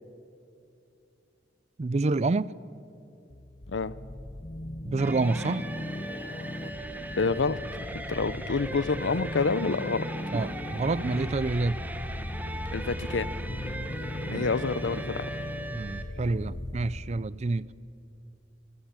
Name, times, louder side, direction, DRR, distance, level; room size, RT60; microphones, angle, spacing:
voice 1, 1.8-2.5 4.9-5.7 10.3-11.8 14.3-14.5 14.9-15.0 15.7-17.7, right 3 dB, 35° right, 0.4 m, -28 dB
sound 1, 3.3-17.0, left 1 dB, 35° left, 0.8 m, -37 dB
sound 2, 5.0-16.0, right 1 dB, 10° right, 1.3 m, -39 dB
voice 2, 7.2-7.6 8.1-10.1 12.7-13.3 14.3-15.3, left 4 dB, 85° left, 0.7 m, -27 dB
24.5 x 15.0 x 8.8 m
head